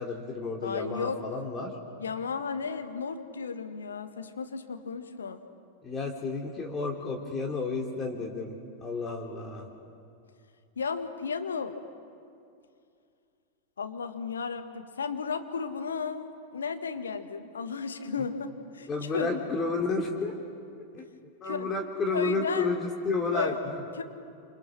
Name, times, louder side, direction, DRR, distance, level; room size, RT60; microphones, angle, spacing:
voice 1, 0.0-1.8 5.8-8.5 8.8-9.7 18.9-20.3 20.9-21.1 21.4-23.8, left 3 dB, 25° left, 0 dB, 2.9 m, -31 dB
voice 2, 0.6-1.2 2.0-5.4 10.8-11.8 13.8-19.3 21.4-21.7 22.1-22.7 23.3-23.6 24.0-24.1, left 5 dB, 70° left, 7 dB, 1.8 m, -34 dB
28.0 x 27.5 x 6.2 m, 2.4 s
figure-of-eight pair, 90°, 0 cm